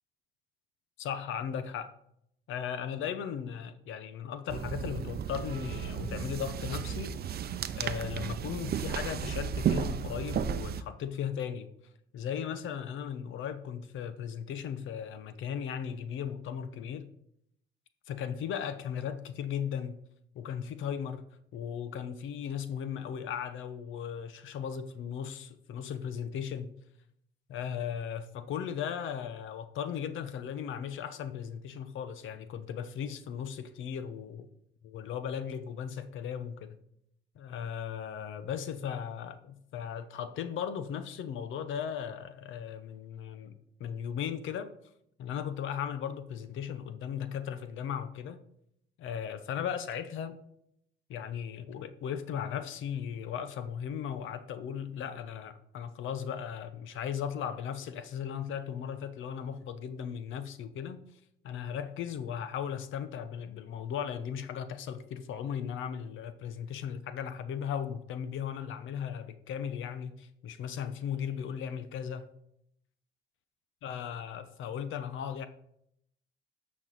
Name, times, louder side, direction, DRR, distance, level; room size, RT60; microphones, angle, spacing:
voice 1, 1.0-1.9 2.5-7.2 7.7-11.7 12.1-17.1 18.1-20.0 20.3-21.3 21.5-26.7 27.5-34.5 34.8-36.8 37.4-43.5 43.8-44.7 45.2-48.4 49.0-50.3 51.1-61.0 61.4-72.3 73.8-75.5, left 8 dB, 80° left, 0.8 m, -37 dB
sound 1, 4.5-10.8, right 8 dB, 50° right, 0.6 m, -34 dB
11.0 x 6.2 x 4.0 m
cardioid pair, 90°, 20 cm